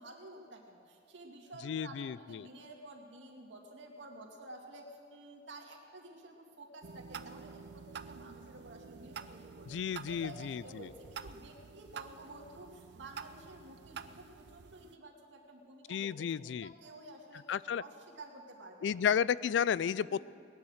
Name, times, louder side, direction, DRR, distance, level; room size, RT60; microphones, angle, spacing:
voice 1, 0.0-4.9 5.1-9.8 10.1-17.5 17.8-18.9 20.0-20.2, right 2 dB, 90° right, 1 dB, 2.3 m, -51 dB
voice 2, 1.6-2.5 9.7-10.9 15.9-16.7 17.5-17.8 18.8-20.2, left 8 dB, 75° left, 20 dB, 0.3 m, -32 dB
sound 1, 6.8-15.0, right 6 dB, 65° right, 0.5 m, -49 dB
19.0 x 10.5 x 6.4 m, 2.5 s
head